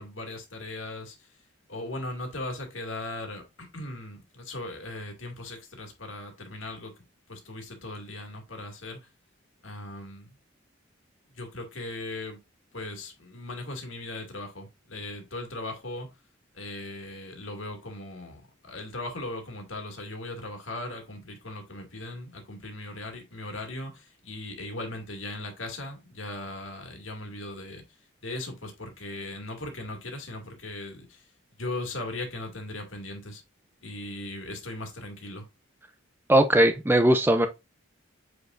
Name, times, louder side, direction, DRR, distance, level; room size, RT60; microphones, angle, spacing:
voice 1, 0.0-1.3 1.7-6.9 7.3-9.1 9.6-10.3 11.3-12.4 12.7-16.1 16.5-27.8 28.2-31.3 31.6-33.4 33.8-35.5, left 2 dB, 70° left, 2.3 m, -38 dB
voice 2, 36.3-37.5, right 1 dB, 10° right, 0.4 m, -19 dB
8.1 x 4.7 x 2.5 m
head